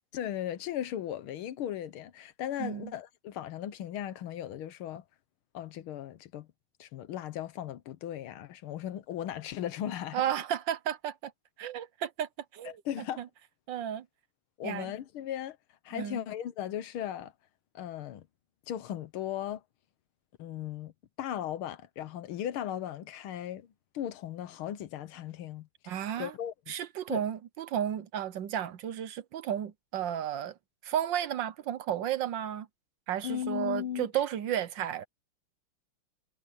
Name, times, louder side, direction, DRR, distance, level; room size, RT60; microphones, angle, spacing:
voice 1, 0.1-5.0 5.5-6.5 6.8-10.2 12.7-13.3 14.6-15.6 15.9-17.3 17.8-18.2 18.7-19.6 20.4-20.9 21.2-23.7 23.9-26.7 27.1-27.2 33.2-34.1, left 11 dB, 80° left, 1.8 m, -37 dB
voice 2, 2.6-2.9 10.1-11.3 11.6-13.3 13.7-14.0 14.6-14.9 15.9-16.2 25.9-26.3 26.7-30.6 30.8-32.7 33.1-35.0, right 10 dB, 65° right, 1.3 m, -33 dB
omnidirectional pair, 2.3 m